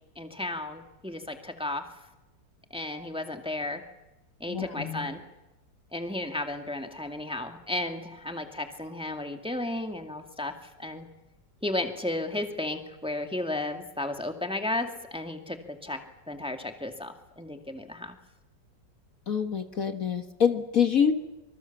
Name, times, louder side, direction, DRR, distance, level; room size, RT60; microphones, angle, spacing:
voice 1, 0.2-1.8 2.7-3.8 4.4-5.2 5.9-11.1 11.6-16.0 16.3-18.2, left 2 dB, 5° right, 5 dB, 2.0 m, -34 dB
voice 2, 4.5-5.1 19.3-21.1, left 7 dB, 50° left, 7 dB, 1.7 m, -26 dB
26.0 x 25.5 x 7.2 m, 0.99 s
omnidirectional pair, 1.9 m